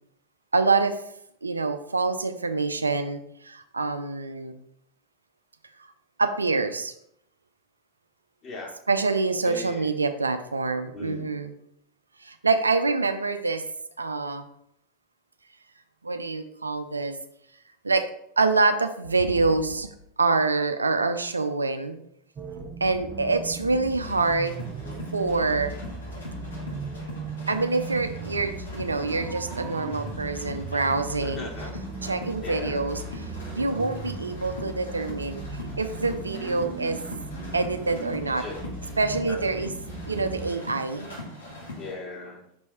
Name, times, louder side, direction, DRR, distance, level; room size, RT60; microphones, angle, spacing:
voice 1, 0.5-1.0 1.4-4.5 6.2-6.9 8.9-11.5 12.2-13.6 14.0-14.5 16.0-17.2 17.8-18.0 18.4-19.9 20.2-22.0 22.8-24.6 25.1-25.7 27.5-31.5 32.0-33.0 33.5-35.4 35.8-37.0 37.5-38.4 39.0-39.7 40.1-41.1, right 3 dB, 90° right, 8 dB, 0.5 m, -26 dB
voice 2, 8.4-8.8 9.4-9.9 10.9-11.3 31.2-31.7 32.4-32.9 38.4-38.6 39.3-39.6 41.7-42.4, left 3 dB, 35° left, -1 dB, 2.5 m, -38 dB
sound 1, 22.4-40.5, right 3 dB, 35° right, 0.8 m, -38 dB
sound 2, 24.0-41.9, left 2 dB, 85° left, 2.1 m, -41 dB
6.1 x 4.6 x 4.2 m, 0.73 s
figure-of-eight pair, 85°, 0 cm